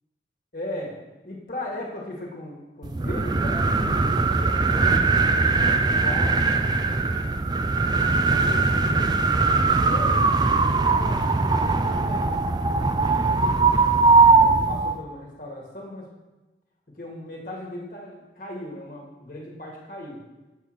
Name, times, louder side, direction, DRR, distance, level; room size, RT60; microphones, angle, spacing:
voice 1, 0.5-1.0 1.2-6.4 6.9-7.1 8.3-11.3 11.5-13.4 14.3-16.1 16.9-20.2, left 1 dB, 45° left, -1 dB, 1.7 m, -38 dB
sound 1, 2.8-15.0, right 3 dB, 25° right, 0.3 m, -20 dB
6.8 x 5.6 x 6.5 m, 1.1 s
head